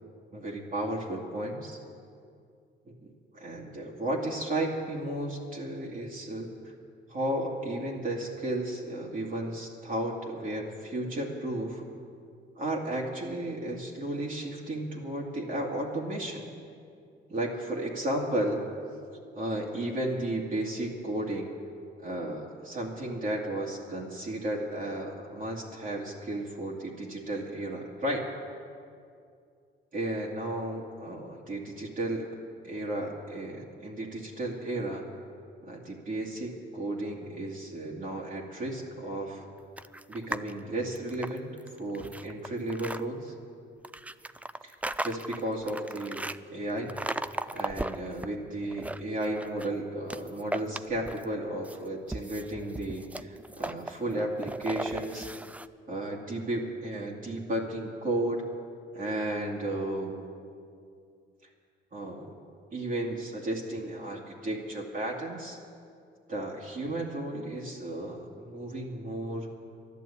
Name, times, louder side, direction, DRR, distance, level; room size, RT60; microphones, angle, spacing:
voice 1, 0.3-1.8 2.9-6.5 7.1-11.9 12.6-16.5 17.3-18.6 19.3-21.5 22.0-28.2 29.9-32.3 32.6-35.0 35.6-39.4 40.1-41.5 41.8-43.3 44.6-44.8 45.0-46.9 47.5-55.3 55.9-58.4 58.9-60.2 61.9-62.4 62.7-65.6 66.3-69.5, right 1 dB, 45° right, -3 dB, 2.3 m, -34 dB
sound 1, 39.8-40.5 40.9-43.0 43.8-46.4 46.9-48.3 48.6-49.7 50.1-51.3 51.6-55.7, right 2 dB, 5° right, 0.4 m, -37 dB
12.5 x 11.5 x 8.5 m, 2.4 s
cardioid pair, 90°, 20 cm